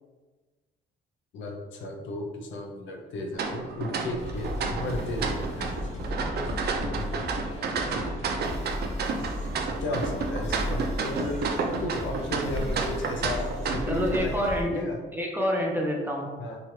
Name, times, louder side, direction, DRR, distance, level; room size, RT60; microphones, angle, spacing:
voice 1, 1.3-6.0 6.8-7.7 9.8-15.0 16.4-16.6, left 2 dB, 70° left, 2 dB, 0.6 m, -34 dB
sound 1, 3.3-14.2, right 4 dB, 55° right, 0.4 m, -31 dB
sound 2, 4.2-14.6, left 1 dB, 35° left, 1.0 m, -35 dB
voice 2, 6.2-6.5 13.9-14.8 15.1-16.3, equal, 10° right, -1 dB, 0.6 m, -28 dB
2.9 x 2.4 x 3.0 m, 1.3 s
cardioid pair, 90°, 20 cm